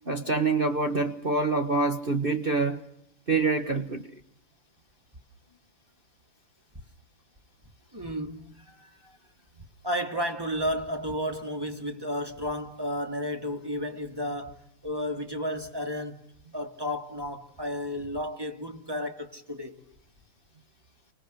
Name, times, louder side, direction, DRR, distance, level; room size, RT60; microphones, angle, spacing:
voice 1, 0.1-2.8 3.3-4.1, right 3 dB, 30° right, 1.3 m, -26 dB
voice 2, 7.9-8.5 9.8-16.2 16.5-19.8, equal, 10° right, 2.3 m, -32 dB
29.5 x 25.5 x 6.5 m
omnidirectional pair, 2.4 m